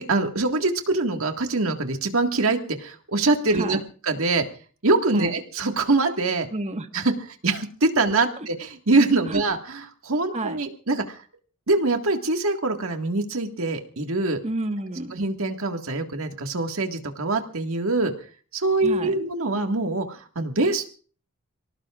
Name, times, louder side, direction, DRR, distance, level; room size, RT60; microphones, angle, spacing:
voice 1, 0.0-3.8 4.0-4.5 4.8-6.5 6.9-7.1 7.4-11.2 11.7-14.4 15.1-18.1 18.5-20.9, right 3 dB, 75° right, 5 dB, 1.9 m, -24 dB
voice 2, 6.5-6.9 9.3-9.4 10.3-10.6 14.4-15.1 18.8-19.1, right 1 dB, 30° right, 6 dB, 1.5 m, -30 dB
28.5 x 18.5 x 2.5 m, 0.42 s
head